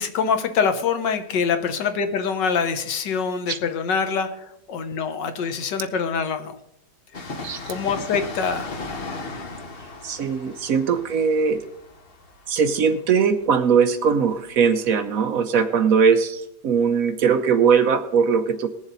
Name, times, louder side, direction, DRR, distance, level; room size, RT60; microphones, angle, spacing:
voice 1, 0.0-6.6 7.1-7.2 7.6-8.7, left 6 dB, 85° left, 8 dB, 1.7 m, -25 dB
Train, 7.1-14.6 14.8-14.9, left 3 dB, 35° left, 1.2 m, -37 dB
voice 2, 7.4-7.7 10.0-11.6 12.5-18.7, right 6 dB, 65° right, 9 dB, 1.0 m, -20 dB
20.5 x 7.2 x 4.0 m, 0.83 s
omnidirectional pair, 1.9 m